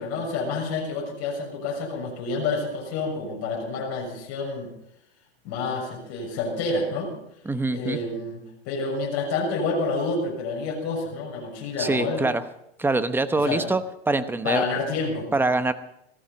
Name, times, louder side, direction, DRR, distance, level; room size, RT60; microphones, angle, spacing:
voice 1, 0.0-4.7 5.4-7.1 7.7-12.2 13.4-13.6 14.4-15.3, left 3 dB, 45° left, -1 dB, 6.5 m, -28 dB
voice 2, 7.4-8.0 11.8-12.4 12.8-14.6 15.3-15.7, right 2 dB, 5° right, 11 dB, 0.9 m, -24 dB
17.5 x 14.0 x 5.4 m, 0.79 s
hypercardioid pair, 115°, 34 cm